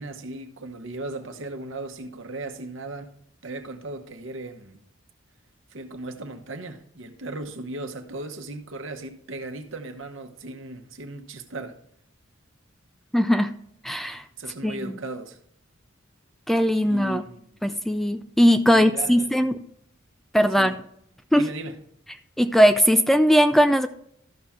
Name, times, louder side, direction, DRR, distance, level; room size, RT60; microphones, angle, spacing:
voice 1, 0.0-3.1 3.4-4.8 5.7-11.8 14.4-15.4 16.8-17.5 18.7-19.5 20.5-20.8 21.3-21.8, right 2 dB, 70° right, 1.0 m, -37 dB
voice 2, 13.1-13.5 13.8-14.2 14.6-15.0 16.5-17.2 17.6-19.5 20.3-20.8 21.3-21.5 22.4-23.9, equal, ahead, 0.3 m, -19 dB
13.0 x 5.8 x 3.6 m
head